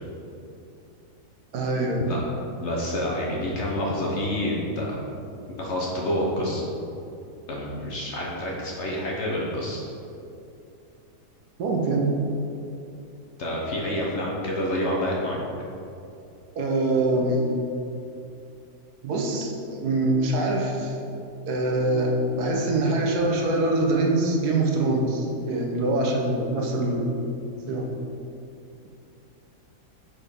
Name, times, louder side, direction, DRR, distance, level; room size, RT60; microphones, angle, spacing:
voice 1, 1.5-2.0 11.6-12.1 16.6-17.5 19.0-21.0 21.5-27.1 27.7-27.8, right 2 dB, 75° right, 0 dB, 1.3 m, -24 dB
voice 2, 2.5-5.0 5.6-6.6 7.5-9.8 13.4-15.4, left 1 dB, 55° left, -3 dB, 0.9 m, -28 dB
5.0 x 4.2 x 5.1 m, 2.7 s
omnidirectional pair, 1.7 m